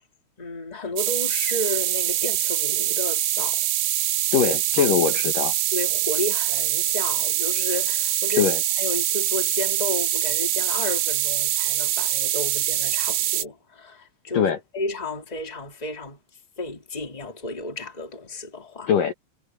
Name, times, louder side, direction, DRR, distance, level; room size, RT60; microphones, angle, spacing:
voice 1, 0.4-3.7 4.8-4.9 5.7-14.5 14.7-16.2 16.6-18.9, left 2 dB, 10° left, 2.6 m, -32 dB
sound 1, 1.0-13.4, right 13 dB, 80° right, 4.0 m, -24 dB
voice 2, 4.3-5.5 8.4-8.6 14.3-14.6 18.9-19.1, left 7 dB, 60° left, 2.3 m, -21 dB
omnidirectional pair, 5.9 m